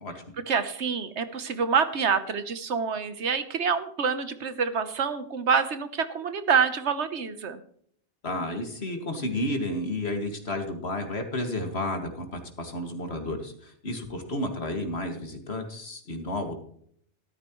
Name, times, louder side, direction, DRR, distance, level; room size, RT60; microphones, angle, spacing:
voice 1, 0.5-7.6, right 6 dB, 75° right, 11 dB, 1.3 m, -26 dB
voice 2, 8.2-16.5, left 1 dB, 65° left, 4 dB, 2.4 m, -32 dB
14.0 x 13.0 x 3.1 m, 0.62 s
omnidirectional pair, 1.2 m